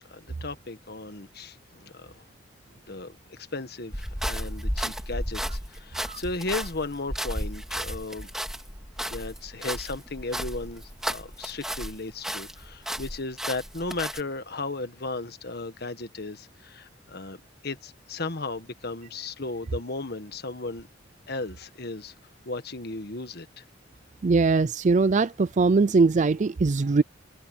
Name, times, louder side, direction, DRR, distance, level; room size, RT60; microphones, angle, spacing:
voice 1, 0.1-2.2 2.9-8.3 9.1-17.4 17.6-20.9 21.3-22.1 22.4-23.6, left 3 dB, 55° left, 1.5 m, -35 dB
sound 1, 3.9-12.0 12.2-14.2, equal, 5° right, 2.2 m, -33 dB
voice 2, 24.2-27.0, right 4 dB, 40° right, 0.4 m, -21 dB
head